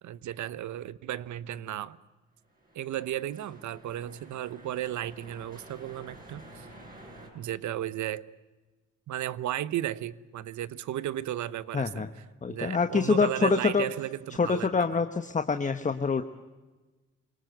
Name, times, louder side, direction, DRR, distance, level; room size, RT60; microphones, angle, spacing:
voice 1, 0.0-2.0 2.7-6.7 7.3-8.2 9.1-12.0 12.5-15.0, right 12 dB, 70° right, 17 dB, 1.0 m, -34 dB
sound 1, 2.4-7.3, right 1 dB, 30° right, 7.6 m, -50 dB
voice 2, 11.7-12.1 12.4-13.9 14.4-16.2, left 5 dB, 25° left, 8 dB, 1.2 m, -26 dB
27.5 x 19.0 x 8.0 m, 1.2 s
cardioid pair, 90°, 30 cm